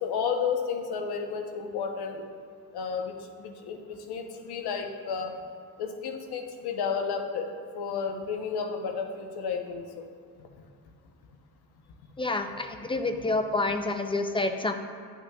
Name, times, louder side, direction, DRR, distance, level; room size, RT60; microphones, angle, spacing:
voice 1, 0.0-2.2 2.7-5.4 5.8-10.1, left 6 dB, 90° left, 5 dB, 0.8 m, -32 dB
voice 2, 12.2-14.7, left 2 dB, 15° left, 7 dB, 0.4 m, -28 dB
10.0 x 6.1 x 2.2 m, 2.2 s
cardioid pair, 105°, 38 cm